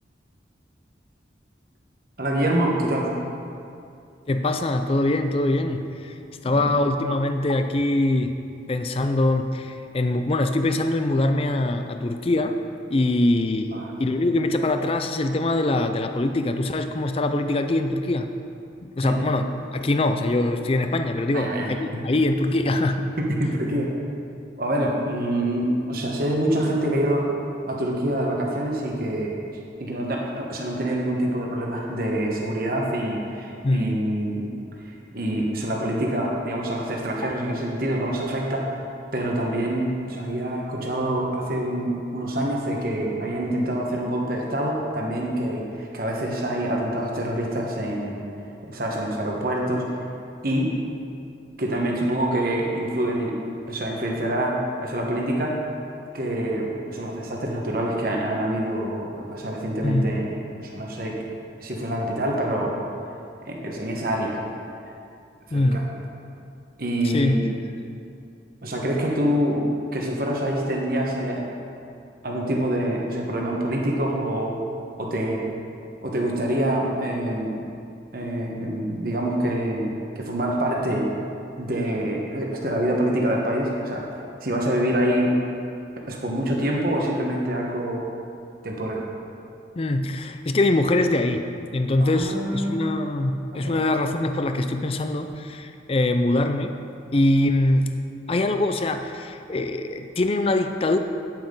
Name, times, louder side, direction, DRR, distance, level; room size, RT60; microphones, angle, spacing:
voice 1, 2.2-3.1 6.5-6.6 13.7-13.9 19.0-19.4 21.3-22.0 23.2-23.9 24.6-27.3 27.7-29.4 29.8-34.5 34.8-38.7 39.1-48.2 48.7-49.8 50.4-50.7 51.6-53.4 53.7-55.6 56.1-61.2 61.6-62.7 63.5-64.4 65.5-65.8 66.8-67.5 68.6-71.4 72.2-74.6 75.0-75.4 76.0-77.7 78.1-79.9 80.2-81.1 81.6-84.0 84.4-85.3 86.1-88.0 88.6-89.0 92.0-92.9 93.5-93.8, right 1 dB, 50° right, -1 dB, 1.3 m, -26 dB
voice 2, 4.3-6.1 6.4-8.3 8.7-12.6 12.9-18.3 18.8-19.4 19.7-23.1 33.6-33.9 37.2-37.3 59.8-60.1 65.5-65.8 67.1-67.4 89.8-96.7 97.1-97.9 98.3-101.0, left 2 dB, 30° left, 7 dB, 0.4 m, -23 dB
9.4 x 8.9 x 3.9 m, 2.5 s
head